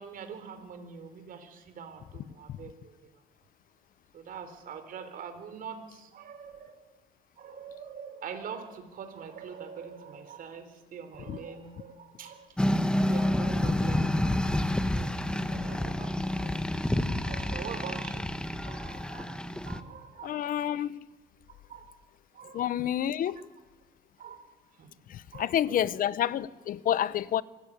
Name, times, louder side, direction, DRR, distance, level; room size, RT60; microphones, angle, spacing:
voice 1, 0.0-3.0 4.1-6.8 7.4-12.5 13.0-14.6 14.9-16.6 17.2-18.3 18.6-19.3 19.6-20.9 21.7-21.9 22.3-22.6 24.2-24.5 24.8-24.9 25.3-26.0, right 6 dB, 55° right, 4.0 m, -44 dB
sound 1, 12.6-19.8, left 1 dB, 5° left, 1.3 m, -29 dB
voice 2, 20.2-21.0 22.5-23.4 25.1-27.4, left 11 dB, 55° left, 0.8 m, -29 dB
25.0 x 16.5 x 8.6 m
cardioid pair, 110°, 17 cm